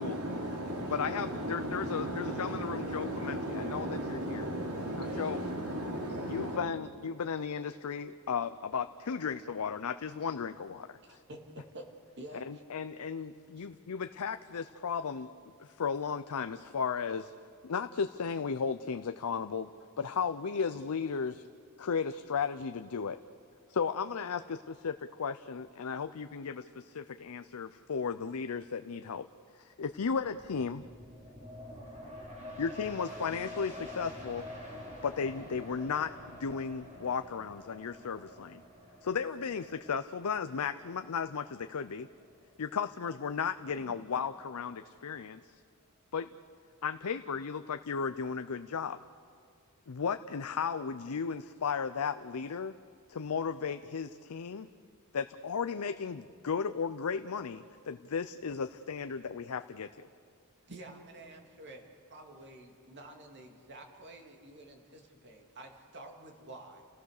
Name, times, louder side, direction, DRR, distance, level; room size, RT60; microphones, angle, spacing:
voice 1, 0.0-6.6, right 1 dB, 85° right, 1 dB, 3.0 m, -36 dB
voice 2, 0.9-4.5 5.0-5.4 6.3-11.2 12.5-15.3 15.6-17.3 17.6-19.7 20.0-21.5 21.8-23.2 23.7-29.3 29.5-30.8 32.6-34.5 35.0-38.6 39.0-42.1 42.6-45.6 46.1-46.3 46.8-49.0 49.9-52.7 53.1-54.7 55.1-60.1, left 6 dB, 75° left, 9 dB, 0.6 m, -35 dB
voice 3, 11.1-11.9 12.2-12.6 13.6-13.7 43.7-44.1 60.6-66.8, right 1 dB, 50° right, 2 dB, 2.5 m, -49 dB
sound 1, 29.9-43.2 43.6-43.7, left 1 dB, 30° right, 4.1 m, -47 dB
29.5 x 16.5 x 6.6 m, 2.3 s
head